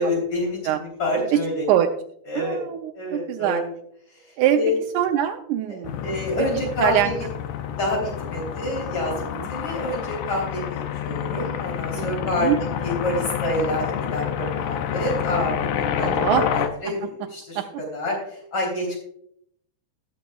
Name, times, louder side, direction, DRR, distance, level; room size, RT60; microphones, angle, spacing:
voice 1, 0.0-1.6 2.3-2.6 2.9-3.6 4.1-4.2 4.5-4.7 5.7-7.3 7.7-9.1 9.5-12.5 12.8-16.1 16.3-19.0, left 1 dB, 35° left, -2 dB, 3.9 m, -27 dB
voice 2, 2.4-3.6 4.4-4.6 4.9-6.0 6.4-7.1 9.4-9.5 12.0-12.6 16.0-16.4 16.9-17.0 17.6-17.7, right 11 dB, 80° right, 5 dB, 2.0 m, -23 dB
sound 1, 5.8-16.7, left 9 dB, 80° left, 2.2 m, -28 dB
19.0 x 6.9 x 2.3 m, 0.71 s
omnidirectional pair, 3.5 m